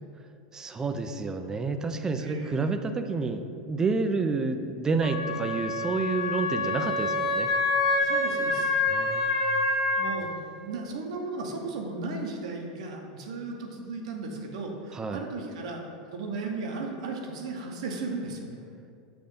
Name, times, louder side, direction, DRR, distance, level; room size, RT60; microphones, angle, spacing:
voice 1, 0.5-7.5 8.9-10.0 14.9-15.2, right 4 dB, 15° right, 8 dB, 0.4 m, -29 dB
voice 2, 2.2-2.6 8.0-8.8 10.0-15.8 16.1-18.6, right 3 dB, 75° right, 2 dB, 0.9 m, -35 dB
Wind instrument woodwind instrument, 5.0-10.1, left 2 dB, 90° left, 0.9 m, -27 dB
6.8 x 2.6 x 5.4 m, 2.5 s
supercardioid pair, 120°, 4 cm